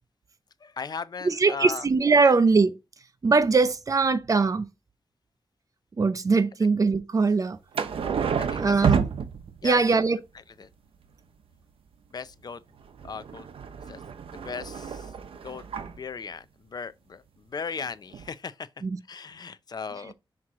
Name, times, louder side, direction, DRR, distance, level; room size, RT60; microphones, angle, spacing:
voice 1, 0.6-1.9 2.2-2.3 8.4-9.0 9.6-10.0 10.6-10.7 12.1-12.6 13.0-13.5 13.9-15.1 15.4-18.7 19.1-20.1, left 5 dB, 45° left, 0.5 m, -38 dB
voice 2, 1.2-2.7 3.2-4.7 6.0-7.6 8.5-9.1 9.6-10.2 18.8-18.9, right 4 dB, 40° right, 0.6 m, -21 dB
sound 1, 7.7-9.9 12.8-16.0 17.8-17.9 18.1-18.3, right 7 dB, 85° right, 0.7 m, -29 dB
6.1 x 4.3 x 3.7 m
wide cardioid pair, 135°, 9 cm